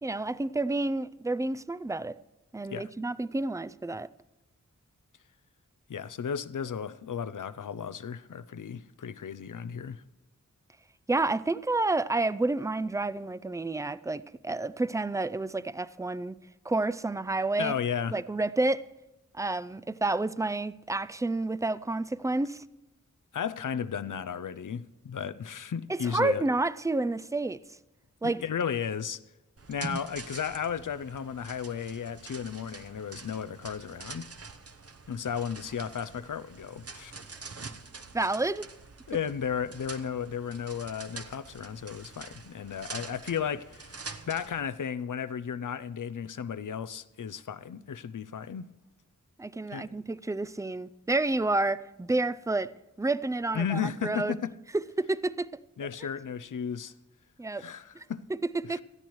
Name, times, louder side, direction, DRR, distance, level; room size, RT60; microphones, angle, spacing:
voice 1, 0.0-2.2 2.5-4.1 11.1-16.4 16.7-17.7 18.1-18.9 19.3-22.6 25.9-27.6 28.2-28.4 38.1-38.7 49.4-54.3 54.7-55.5 57.4-57.7 57.9-58.0 58.4-58.8, right 2 dB, 10° right, 0.4 m, -29 dB
voice 2, 5.9-10.0 17.6-18.2 23.3-26.4 28.2-29.2 29.7-34.3 35.1-37.1 39.1-44.0 44.3-48.7 49.7-49.9 53.5-54.5 55.8-56.9 57.5-58.3 58.7-58.8, left 7 dB, 80° left, 0.6 m, -34 dB
sound 1, 29.6-44.6, right 4 dB, 50° right, 0.9 m, -45 dB
19.0 x 13.0 x 3.1 m
wide cardioid pair, 40°, 31 cm